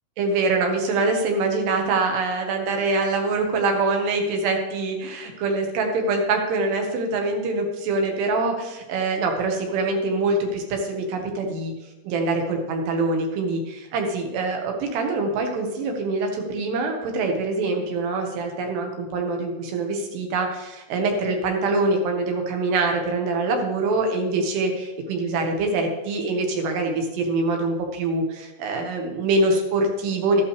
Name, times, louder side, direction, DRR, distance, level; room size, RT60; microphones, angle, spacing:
voice 1, 0.2-11.7 12.1-30.4, right 3 dB, 80° right, 3 dB, 3.6 m, -24 dB
12.5 x 11.5 x 3.3 m, 1.1 s
omnidirectional pair, 4.8 m